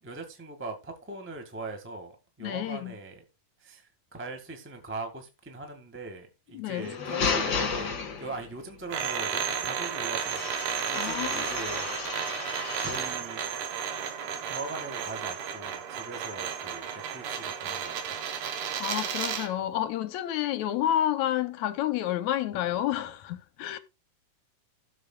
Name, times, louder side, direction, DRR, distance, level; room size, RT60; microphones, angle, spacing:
voice 1, 0.0-3.2 3.6-10.5 10.8-11.8 12.8-13.4 14.5-18.2 22.5-22.6, right 2 dB, 5° right, 1.1 m, -40 dB
voice 2, 2.4-2.9 6.5-7.0 10.9-11.5 18.8-23.8, left 12 dB, 75° left, 1.9 m, -30 dB
sound 1, 6.7-8.6 10.2-13.2, left 5 dB, 45° left, 2.1 m, -33 dB
sound 2, 8.9-19.5, right 8 dB, 75° right, 2.7 m, -33 dB
17.0 x 7.0 x 2.3 m
omnidirectional pair, 3.6 m